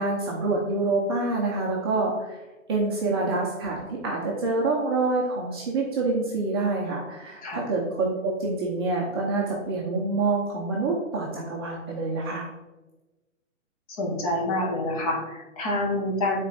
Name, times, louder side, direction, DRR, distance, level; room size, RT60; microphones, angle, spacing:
voice 1, 0.0-2.4 2.7-12.4, right 3 dB, 20° right, -3 dB, 0.8 m, -26 dB
voice 2, 14.0-16.5, left 1 dB, 25° left, 0 dB, 1.5 m, -27 dB
10.0 x 4.3 x 4.2 m, 1.1 s
hypercardioid pair, 155°, 41 cm